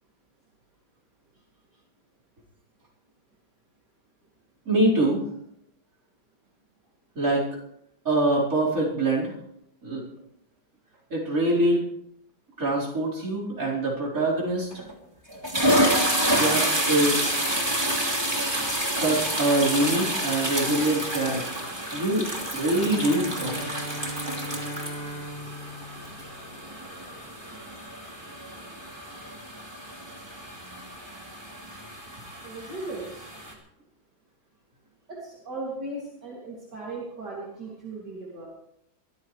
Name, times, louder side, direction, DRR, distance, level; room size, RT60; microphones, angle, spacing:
voice 1, 4.6-5.2 7.1-7.5 8.0-9.3 9.8-10.1 11.1-11.8 12.6-14.8 16.3-17.4 18.9-23.7, right 1 dB, 45° right, -5 dB, 5.0 m, -25 dB
sound 1, 14.7-14.9 15.3-33.5, right 1 dB, 15° right, 2.7 m, -29 dB
Bowed string instrument, 22.7-26.8, equal, 85° left, 3.2 m, -38 dB
voice 2, 32.4-33.4 35.1-38.5, right 2 dB, 60° right, -4 dB, 3.4 m, -37 dB
22.5 x 14.0 x 3.3 m, 0.76 s
omnidirectional pair, 2.1 m